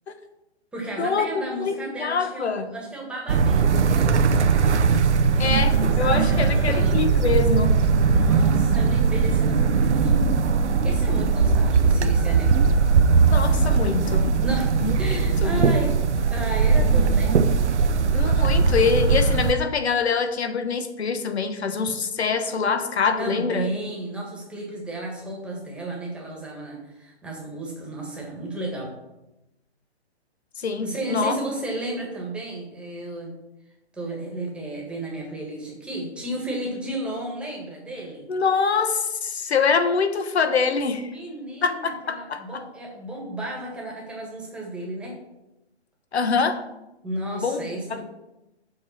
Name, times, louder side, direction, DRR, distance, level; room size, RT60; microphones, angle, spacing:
voice 1, 0.7-4.7 5.0-7.0 8.1-10.4 10.8-13.0 14.4-15.9 16.3-17.4 23.2-28.9 30.8-33.3 33.9-38.2 41.1-45.2 47.0-48.0, right 1 dB, 5° right, -2 dB, 1.5 m, -33 dB
voice 2, 1.6-2.7 5.4-7.8 13.3-14.3 14.8-14.9 15.4-15.6 18.1-23.7 30.6-31.4 38.3-41.1 41.6-42.6 46.1-46.6 47.4-47.6 47.9-48.0, left 5 dB, 70° left, 8 dB, 1.2 m, -24 dB
sound 1, 3.3-19.5, right 5 dB, 90° right, 0.8 m, -20 dB
7.7 x 5.1 x 7.0 m, 0.93 s
hypercardioid pair, 150°, 34 cm